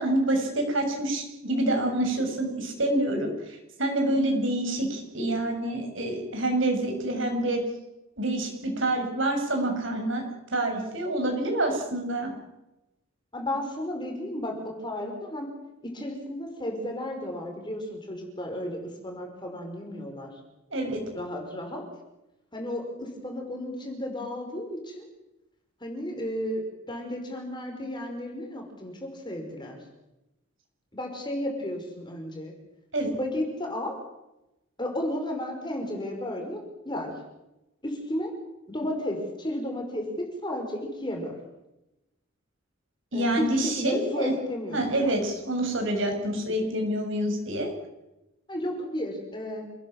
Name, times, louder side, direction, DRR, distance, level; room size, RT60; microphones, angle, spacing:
voice 1, 0.0-7.6 8.2-10.2 10.5-12.3 20.7-21.0 32.9-33.2 43.1-44.3 44.7-47.7, right 1 dB, 60° right, 3 dB, 7.2 m, -27 dB
voice 2, 13.3-15.5 15.8-20.4 21.2-21.8 22.5-25.1 25.8-29.8 30.9-32.5 33.2-34.0 34.8-37.1 37.8-38.3 38.7-41.4 43.1-45.1 48.5-49.7, left 1 dB, 20° left, 2 dB, 5.5 m, -33 dB
28.5 x 19.5 x 7.4 m, 0.95 s
head